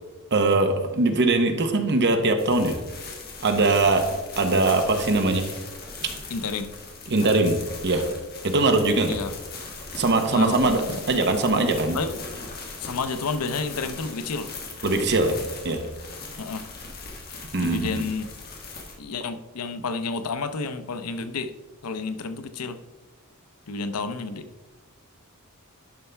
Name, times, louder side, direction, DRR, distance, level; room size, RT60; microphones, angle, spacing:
voice 1, 0.3-2.8 3.4-4.0 4.4-5.5 6.0-6.1 7.1-7.6 7.8-8.0 8.4-9.2 9.9-12.0 14.8-15.4 15.6-15.8 17.5-18.0, right 2 dB, 50° right, 6 dB, 1.0 m, -21 dB
sound 1, 2.4-18.9, left 4 dB, 45° left, 1.6 m, -39 dB
voice 2, 6.3-6.7 9.1-9.3 10.3-11.0 11.9-12.2 12.8-14.5 16.4-16.7 17.6-18.3 19.0-21.5 21.8-22.8 23.7-24.5, left 4 dB, 90° left, 10 dB, 0.7 m, -30 dB
11.5 x 5.5 x 3.4 m, 1.2 s
head